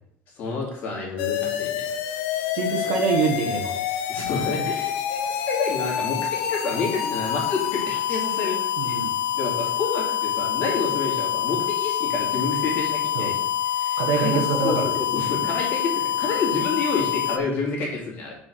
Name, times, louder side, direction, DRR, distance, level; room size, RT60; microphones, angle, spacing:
voice 1, 0.4-1.8 4.1-9.0 9.3-13.4 13.6-15.9 16.2-18.3, left 4 dB, 35° left, -2 dB, 2.9 m, -29 dB
sound 1, 1.2-17.4, left 10 dB, 80° left, 0.8 m, -26 dB
voice 2, 2.5-3.8 8.8-9.1 13.1-13.3 14.0-14.9, right 5 dB, 80° right, 3 dB, 1.5 m, -25 dB
7.5 x 4.9 x 6.4 m, 0.75 s
cardioid pair, 175°, 5 cm